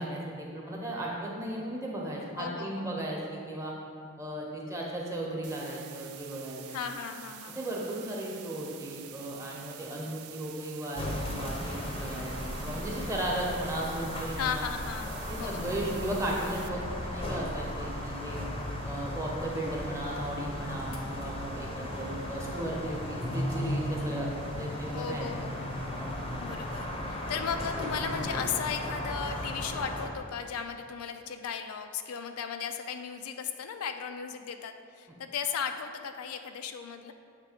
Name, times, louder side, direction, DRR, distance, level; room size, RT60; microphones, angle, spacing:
voice 1, 0.0-3.7 4.2-6.9 7.5-14.7 15.3-18.4 18.8-25.3, right 1 dB, 15° right, -3 dB, 0.9 m, -36 dB
voice 2, 2.4-3.1 6.7-7.6 14.4-15.9 24.9-25.7 26.4-37.1, left 7 dB, 75° left, 7 dB, 0.4 m, -36 dB
sound 1, 5.4-16.7, right 11 dB, 80° right, 0.4 m, -48 dB
sound 2, 11.0-30.1, left 1 dB, 25° left, 0.7 m, -36 dB
7.4 x 3.2 x 5.0 m, 2.5 s
head